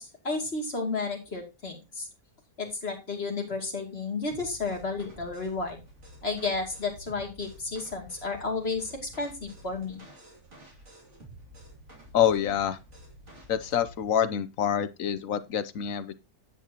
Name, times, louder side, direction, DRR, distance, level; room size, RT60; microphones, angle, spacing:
voice 1, 0.0-2.1 2.6-5.8 6.2-10.0, left 3 dB, 45° left, 2.8 m, -32 dB
sound 1, 4.3-14.0, equal, 50° right, 2.9 m, -50 dB
voice 2, 12.1-12.8 13.5-16.2, left 9 dB, 65° left, 1.2 m, -26 dB
10.0 x 8.3 x 2.9 m
omnidirectional pair, 1.6 m